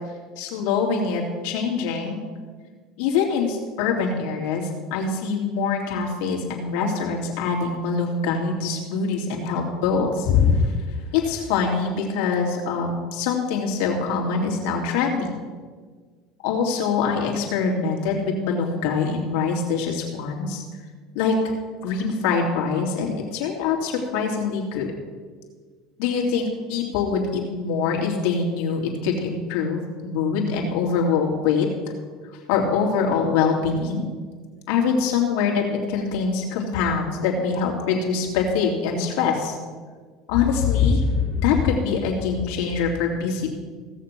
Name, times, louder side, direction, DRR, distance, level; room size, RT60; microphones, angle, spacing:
voice 1, 0.4-2.2 3.0-10.7 11.1-15.3 16.4-20.6 21.1-21.4 21.8-24.9 26.0-31.7 32.5-34.0 34.7-39.6 40.3-43.6, left 5 dB, 75° left, -1 dB, 2.7 m, -24 dB
16.5 x 6.7 x 5.9 m, 1.6 s
supercardioid pair, 95°, 0 cm